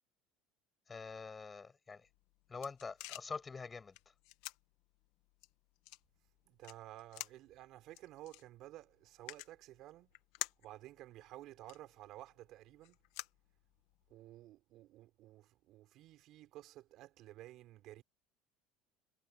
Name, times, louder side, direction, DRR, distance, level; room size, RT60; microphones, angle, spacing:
voice 1, 0.9-2.1 2.5-4.0, left 4 dB, 20° left, 6.0 m, -45 dB
sound 1, 2.0-14.1, left 20 dB, 75° left, 1.6 m, -52 dB
voice 2, 6.5-10.1 10.6-13.0 14.1-18.0, right 15 dB, 60° right, 4.0 m, -54 dB
cardioid pair, 130°, 0 cm